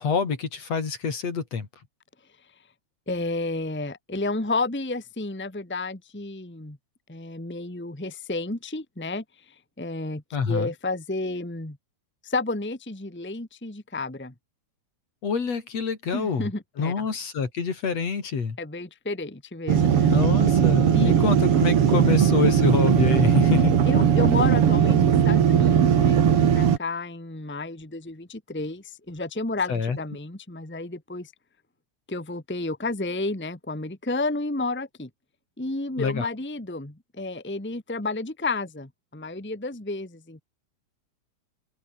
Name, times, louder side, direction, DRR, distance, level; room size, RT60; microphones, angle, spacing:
voice 1, 0.0-1.7 10.3-10.7 15.2-16.5 16.8-18.6 20.1-23.8 29.7-30.0 36.0-36.3, left 5 dB, 60° left, 4.5 m, -26 dB
voice 2, 3.1-6.8 7.1-11.8 12.2-14.3 16.1-17.1 18.6-20.1 20.9-21.3 23.9-31.3 32.1-35.1 35.6-40.4, left 2 dB, 5° left, 1.8 m, -31 dB
sound 1, 19.7-26.8, right 8 dB, 55° right, 2.5 m, -19 dB
open air
omnidirectional pair, 3.4 m